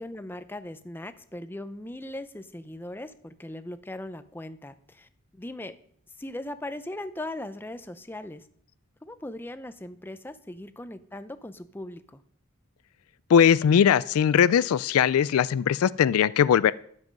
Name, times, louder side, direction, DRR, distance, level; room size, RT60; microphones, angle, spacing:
voice 1, 0.0-5.7 6.2-8.5 9.0-12.2, left 1 dB, 10° left, 11 dB, 0.5 m, -39 dB
voice 2, 13.3-16.7, left 8 dB, 85° left, 17 dB, 0.3 m, -20 dB
12.0 x 7.6 x 5.2 m, 0.63 s
head